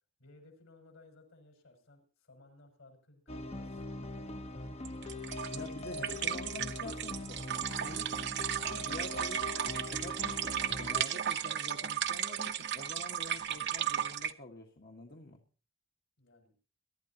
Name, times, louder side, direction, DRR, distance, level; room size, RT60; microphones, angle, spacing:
voice 1, 0.2-5.3 13.5-13.7 16.2-16.5, left 2 dB, 65° left, 3 dB, 6.5 m, -60 dB
sound 1, 3.3-11.0, left 2 dB, 30° left, 1.0 m, -42 dB
Woman peeing, 4.8-14.3, right 10 dB, 50° right, 0.9 m, -35 dB
voice 2, 5.5-10.3 10.7-15.4, left 2 dB, 45° left, 1 dB, 1.6 m, -47 dB
23.5 x 12.5 x 2.9 m, 0.38 s
head